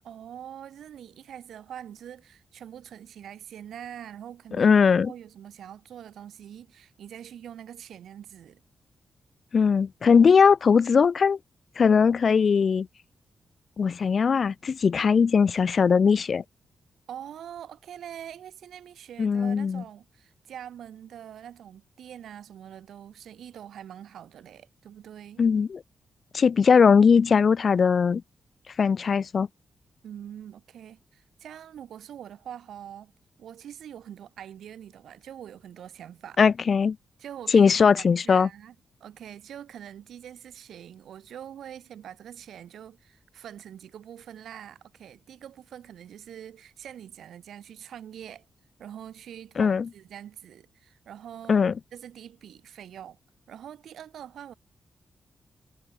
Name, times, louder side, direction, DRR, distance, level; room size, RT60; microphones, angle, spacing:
voice 1, 0.0-4.8 5.0-8.6 17.1-25.4 30.0-33.1 33.4-36.4 37.2-38.7 39.0-48.5 48.8-51.6 51.9-53.2 53.5-54.5, right 10 dB, 85° right, 3.3 m, -44 dB
voice 2, 4.6-5.1 9.5-11.4 11.8-12.9 13.8-16.4 19.2-19.8 25.4-25.8 26.3-28.2 28.8-29.5 36.4-37.0 37.5-38.5 49.6-49.9 51.5-51.7, left 6 dB, 60° left, 0.4 m, -20 dB
cardioid pair, 55°, 0 cm